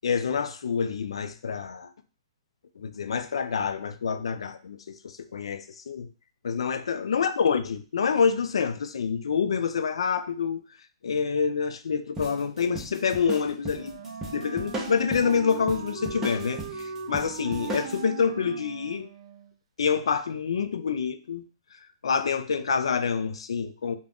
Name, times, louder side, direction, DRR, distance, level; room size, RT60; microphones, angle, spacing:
voice 1, 0.0-1.9 2.8-6.1 6.4-10.6 11.0-13.9 14.3-19.1 19.8-21.4 21.7-23.9, left 6 dB, 85° left, 0.3 m, -27 dB
sound 1, 12.2-18.0, right 1 dB, 15° right, 0.7 m, -37 dB
Wind instrument woodwind instrument, 13.6-19.6, right 7 dB, 70° right, 0.4 m, -39 dB
2.4 x 2.1 x 3.4 m
hypercardioid pair, 150°, 3 cm